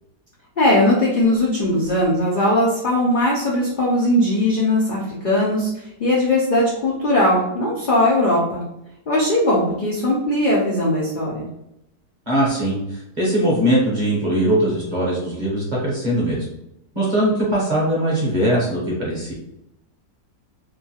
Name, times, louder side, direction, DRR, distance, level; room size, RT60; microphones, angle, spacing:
voice 1, 0.6-8.6 9.1-11.5, left 1 dB, 70° left, -5 dB, 0.4 m, -19 dB
voice 2, 12.3-16.4 16.9-19.3, right 1 dB, 35° right, -6 dB, 0.8 m, -21 dB
2.9 x 2.2 x 2.8 m, 0.82 s
omnidirectional pair, 1.7 m